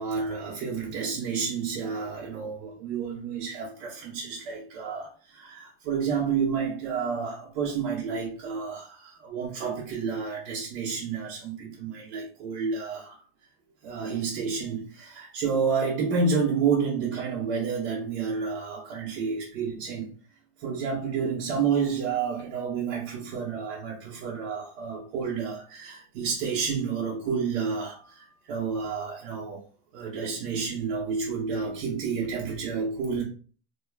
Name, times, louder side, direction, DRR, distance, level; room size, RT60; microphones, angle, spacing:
voice 1, 0.0-13.2 13.8-20.1 20.6-29.6 29.9-33.2, right 5 dB, 60° right, 1.1 m, -30 dB
4.5 x 3.0 x 2.4 m
cardioid pair, 170°, 32 cm